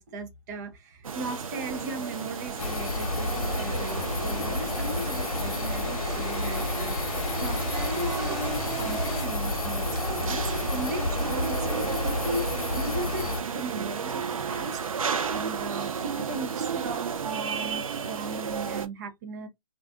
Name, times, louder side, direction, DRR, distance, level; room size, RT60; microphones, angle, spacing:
voice 1, 0.0-14.8 15.3-19.5, right 2 dB, 30° right, 0.7 m, -37 dB
sound 1, 1.0-18.9, right 6 dB, 70° right, 0.6 m, -33 dB
sound 2, 1.3-9.2, left 4 dB, 20° left, 0.8 m, -45 dB
sound 3, 2.6-13.4, left 2 dB, 85° left, 0.8 m, -30 dB
2.5 x 2.3 x 3.5 m
hypercardioid pair, 150°, 18 cm